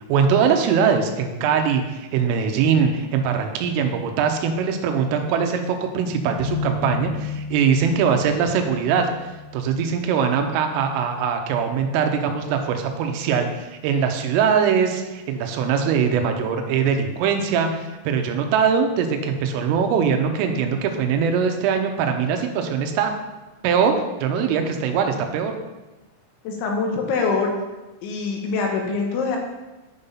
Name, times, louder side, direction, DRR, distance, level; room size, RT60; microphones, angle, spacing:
voice 1, 0.1-9.1 9.5-23.1 23.6-25.5, right 6 dB, 85° right, 5 dB, 3.4 m, -22 dB
sound 1, 6.4-13.4, left 5 dB, 90° left, 2.6 m, -35 dB
voice 2, 26.4-27.5 28.0-29.4, left 4 dB, 75° left, 1 dB, 3.3 m, -24 dB
9.9 x 5.4 x 5.6 m, 1.1 s
omnidirectional pair, 5.8 m